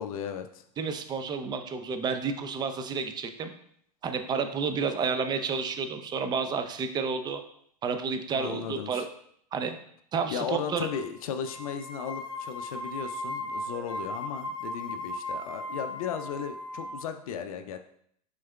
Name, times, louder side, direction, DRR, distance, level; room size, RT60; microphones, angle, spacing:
voice 1, 0.0-0.6 8.3-9.1 10.3-17.8, left 7 dB, 55° left, 8 dB, 0.5 m, -36 dB
voice 2, 0.8-3.5 4.0-7.4 7.8-9.1 9.5-9.8 10.1-10.9, right 5 dB, 20° right, 8 dB, 0.4 m, -30 dB
sound 1, 10.7-11.1 11.4-17.0, left 1 dB, 5° right, 1.8 m, -37 dB
6.1 x 3.8 x 2.3 m, 0.67 s
figure-of-eight pair, 90°, 21 cm